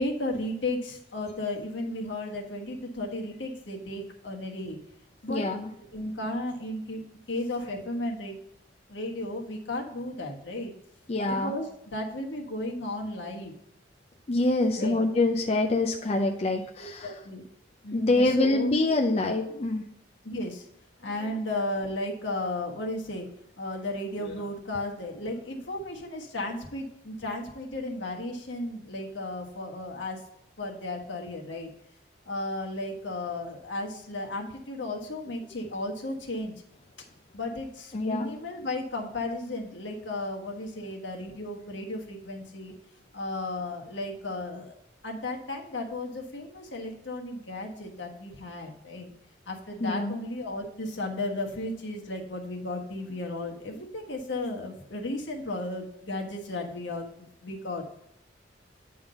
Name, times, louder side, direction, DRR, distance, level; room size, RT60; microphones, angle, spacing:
voice 1, 0.0-4.8 5.2-5.5 5.8-8.4 8.9-10.7 11.2-13.5 14.7-15.0 16.8-17.5 17.8-18.7 20.2-20.7 21.0-23.3 23.6-30.2 30.6-31.7 32.2-36.5 37.3-42.7 43.1-44.7 45.0-49.1 49.5-57.8, left 2 dB, 75° left, 1 dB, 1.4 m, -34 dB
voice 2, 5.3-5.7 11.1-11.5 14.3-17.1 17.9-19.8 37.9-38.3 49.8-50.2, left 2 dB, 35° left, 2 dB, 0.5 m, -25 dB
8.8 x 3.7 x 5.6 m, 0.78 s
head